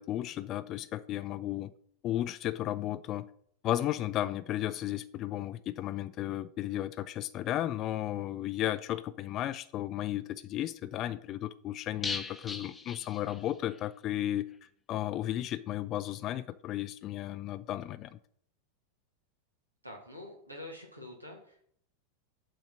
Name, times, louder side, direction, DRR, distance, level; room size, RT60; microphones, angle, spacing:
voice 1, 0.0-1.7 2.0-3.3 3.6-18.2, left 13 dB, 35° left, 0.3 m, -34 dB
sound 1, 12.0-13.8 14.1-14.2 14.5-14.6, left 4 dB, 15° left, 0.7 m, -39 dB
voice 2, 19.8-21.7, left 1 dB, 90° right, 1.4 m, -46 dB
7.8 x 3.5 x 5.8 m
figure-of-eight pair, 85°, 0 cm